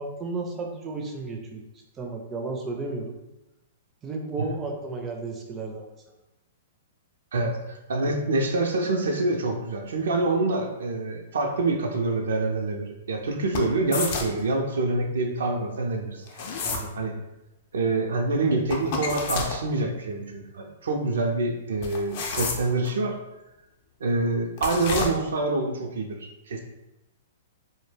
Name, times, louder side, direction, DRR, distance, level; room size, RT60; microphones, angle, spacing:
voice 1, 0.0-1.6 2.0-3.2 4.0-5.9 16.6-17.1, right 3 dB, 20° right, 1 dB, 0.4 m, -33 dB
voice 2, 7.3-16.2 16.6-16.7 17.0-17.1 17.7-23.2 24.0-26.6, right 2 dB, 80° right, 2 dB, 0.4 m, -26 dB
sound 1, 13.5-14.4 16.3-16.9 18.7-19.6 21.8-22.9 24.6-25.1, left 4 dB, 50° left, 0.4 m, -30 dB
2.1 x 2.1 x 3.2 m, 0.95 s
hypercardioid pair, 135°, 0 cm